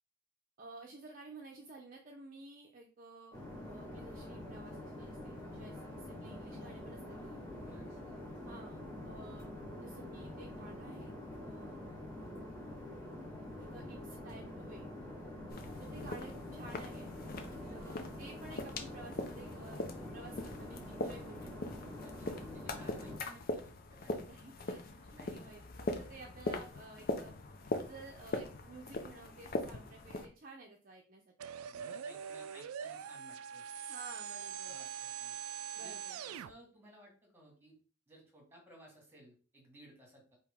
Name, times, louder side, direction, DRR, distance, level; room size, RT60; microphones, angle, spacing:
voice 1, 0.6-3.4 3.6-7.4 8.4-9.5 9.8-11.7 13.4-14.9 15.8-17.1 17.6-21.9 24.2-27.4 27.9-31.3 33.9-34.8 35.7-36.2, right 3 dB, 40° right, 1 dB, 0.6 m, -53 dB
sound 1, 3.3-23.2, left 1 dB, 20° left, 1.6 m, -46 dB
sound 2, 15.5-30.3, left 2 dB, 45° left, 0.6 m, -41 dB
voice 2, 15.6-15.9 17.4-17.6 22.0-24.2 25.1-25.5 25.9-26.0 31.6-33.6 34.7-35.4 35.7-36.0 36.3-37.7 38.1-40.4, right 1 dB, 10° right, 0 dB, 1.6 m, -59 dB
sound 3, 31.4-36.5, right 7 dB, 90° right, 0.3 m, -43 dB
4.9 x 2.9 x 3.5 m, 0.38 s
head